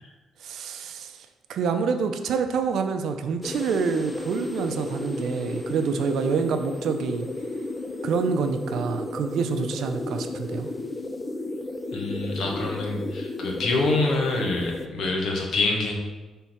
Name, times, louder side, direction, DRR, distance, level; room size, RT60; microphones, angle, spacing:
voice 1, 0.4-7.3 8.0-10.7, right 5 dB, 75° right, 7 dB, 0.5 m, -27 dB
sound 1, 3.4-14.9, left 2 dB, 25° left, 0.5 m, -33 dB
voice 2, 11.9-15.9, left 2 dB, 70° left, 1 dB, 1.2 m, -26 dB
5.6 x 3.6 x 4.6 m, 1.2 s
cardioid pair, 90°, 0 cm